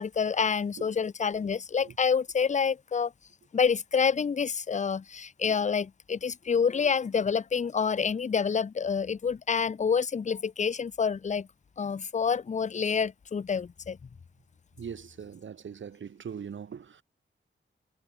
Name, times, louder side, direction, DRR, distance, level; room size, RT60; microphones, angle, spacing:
voice 1, 0.0-3.1 3.5-11.5 11.8-14.0, left 6 dB, 35° left, 0.5 m, -28 dB
voice 2, 14.8-17.0, right 7 dB, 70° right, 1.0 m, -41 dB
wide cardioid pair, 85°, 21 cm